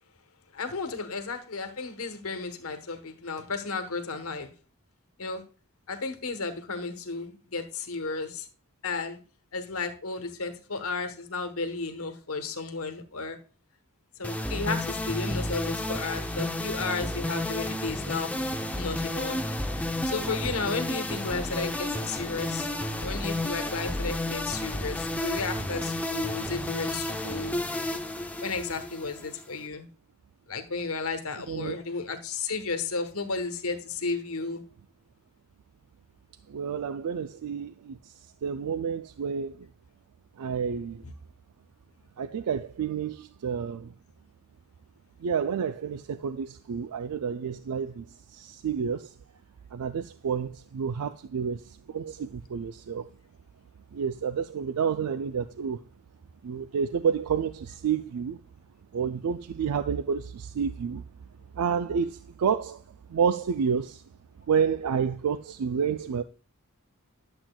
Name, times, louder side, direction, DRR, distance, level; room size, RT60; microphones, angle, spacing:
voice 1, 0.5-4.5 5.2-5.4 5.9-8.5 8.8-9.2 9.5-13.4 14.2-18.3 18.7-19.4 20.0-22.7 23.0-27.6 28.4-29.9 30.5-34.6, left 4 dB, 70° left, 1.2 m, -33 dB
sound 1, 14.2-29.6, left 1 dB, 5° left, 0.6 m, -32 dB
voice 2, 36.5-38.0 38.4-39.5 40.4-41.0 42.2-43.9 45.2-49.1 49.7-53.1 53.9-55.8 56.4-58.4 58.9-61.0 61.6-62.8 63.1-64.0 64.5-66.2, right 7 dB, 85° right, 0.4 m, -29 dB
11.0 x 7.4 x 2.3 m
head